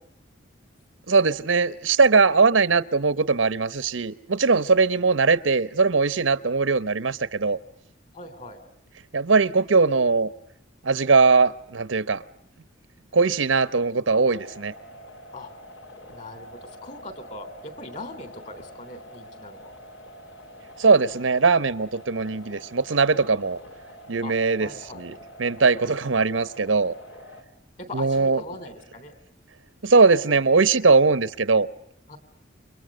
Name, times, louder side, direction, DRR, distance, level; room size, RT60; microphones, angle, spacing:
voice 1, 1.1-7.6 9.1-10.3 10.8-12.2 13.1-14.7 20.8-23.6 24.1-24.7 24.9-26.9 27.9-28.4 29.8-31.7, right 4 dB, 90° right, 0.9 m, -20 dB
voice 2, 8.1-8.6 15.3-15.5 16.1-19.7 24.2-24.3 24.6-25.1 27.8-29.1 30.0-30.4 32.1-32.2, left 2 dB, 40° left, 3.6 m, -40 dB
sound 1, 14.1-27.4, equal, 85° left, 3.7 m, -46 dB
29.5 x 24.0 x 6.4 m
head